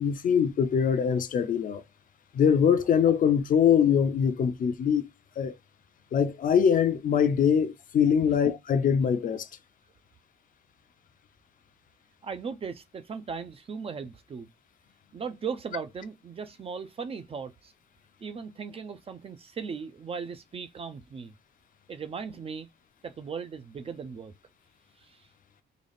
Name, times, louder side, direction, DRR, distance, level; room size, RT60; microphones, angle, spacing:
voice 1, 0.0-1.8 2.3-5.1 5.4-5.5 6.1-9.5, left 7 dB, 45° left, 0.5 m, -23 dB
voice 2, 12.2-14.5 15.1-17.7 18.2-21.3 21.9-22.7 23.0-24.3 25.0-25.3, right 5 dB, 30° right, 0.4 m, -38 dB
3.8 x 2.3 x 3.4 m
cardioid pair, 145°, 19 cm